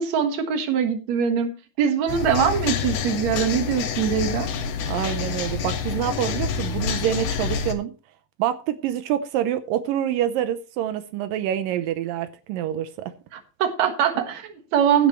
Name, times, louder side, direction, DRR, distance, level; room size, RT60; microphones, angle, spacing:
voice 1, 0.0-1.5 1.8-4.5 13.3-15.1, right 7 dB, 60° right, 6 dB, 2.7 m, -22 dB
sound 1, 2.1-7.7, left 6 dB, 75° left, 2.8 m, -27 dB
voice 2, 4.9-7.9 8.4-13.1, right 11 dB, 85° right, 10 dB, 2.5 m, -26 dB
16.5 x 8.8 x 3.1 m, 0.33 s
omnidirectional pair, 3.9 m